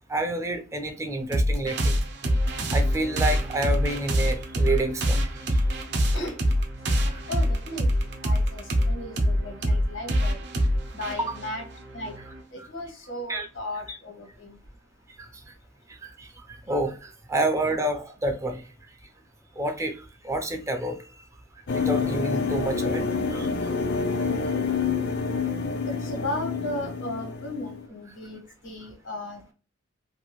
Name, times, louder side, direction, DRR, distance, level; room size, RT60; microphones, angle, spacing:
voice 1, 0.1-2.0 2.7-5.6 6.9-7.2 11.3-11.4 12.6-12.7 13.3-13.5 15.2-15.5 15.9-18.6 19.6-21.3 21.7-23.0 23.3-23.7, right 2 dB, 15° right, 0.4 m, -29 dB
sound 1, 1.3-12.4, equal, 60° right, 0.6 m, -25 dB
voice 2, 7.3-10.4 10.9-11.6 11.9-14.6 25.9-29.5, left 1 dB, 85° left, 1.3 m, -36 dB
sound 2, 21.7-27.8, left 5 dB, 55° left, 0.4 m, -27 dB
2.7 x 2.4 x 3.0 m
head